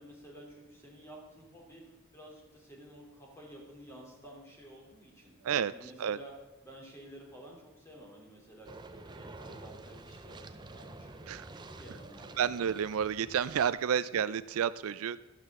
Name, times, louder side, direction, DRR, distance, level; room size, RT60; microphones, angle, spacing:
voice 1, 0.0-6.3 6.6-12.4, right 1 dB, 10° left, -2 dB, 3.1 m, -52 dB
sound 1, 8.7-13.7, right 2 dB, 20° right, 0.5 m, -49 dB
voice 2, 12.4-15.3, right 8 dB, 75° right, 16 dB, 0.4 m, -30 dB
12.5 x 12.0 x 3.7 m, 1.1 s
head